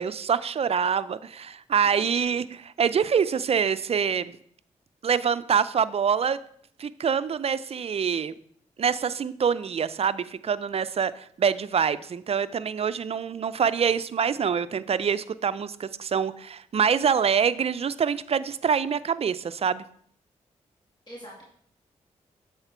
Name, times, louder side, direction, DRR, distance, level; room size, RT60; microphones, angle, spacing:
voice 1, 0.0-2.4 2.8-4.4 5.0-6.4 6.8-8.3 8.8-19.8, right 7 dB, 45° right, 15 dB, 0.4 m, -25 dB
voice 2, 1.8-2.2 21.1-21.4, equal, 30° left, -4 dB, 2.3 m, -44 dB
7.8 x 4.4 x 4.5 m, 0.64 s
supercardioid pair, 45°, 14 cm